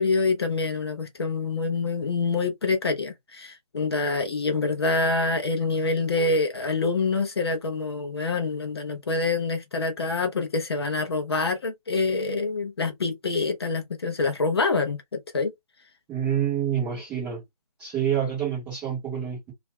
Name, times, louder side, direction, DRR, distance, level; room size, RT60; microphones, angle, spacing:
voice 1, 0.0-15.5, left 3 dB, 40° left, 0.5 m, -26 dB
voice 2, 16.1-17.4 17.8-19.5, right 9 dB, 5° right, 0.6 m, -27 dB
2.3 x 2.1 x 3.4 m
figure-of-eight pair, 145°, 20 cm